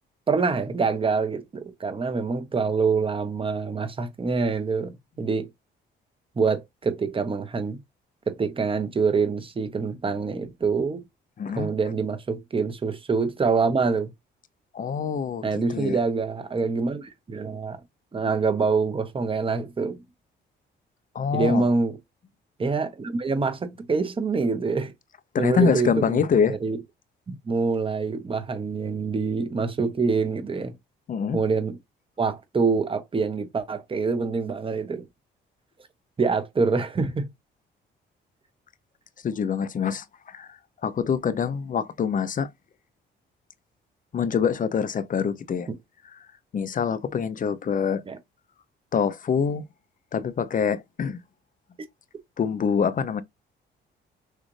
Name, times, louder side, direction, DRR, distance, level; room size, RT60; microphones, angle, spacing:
voice 1, 0.3-5.5 6.4-7.8 8.3-11.0 11.5-14.1 15.4-17.8 18.1-20.0 21.3-22.0 22.6-24.9 25.4-26.8 27.3-30.7 31.3-31.8 32.2-35.0 36.2-37.3 48.1-48.2, right 4 dB, 25° right, 1.0 m, -25 dB
voice 2, 11.4-11.7 14.7-15.4 15.7-16.0 21.1-21.6 25.3-26.6 31.1-31.4 39.2-40.5 40.8-42.5 44.1-45.7 46.5-48.0 48.9-49.6 50.1-51.2 52.4-53.2, left 6 dB, 45° left, 0.7 m, -25 dB
6.4 x 2.5 x 3.2 m
cardioid pair, 90°, 20 cm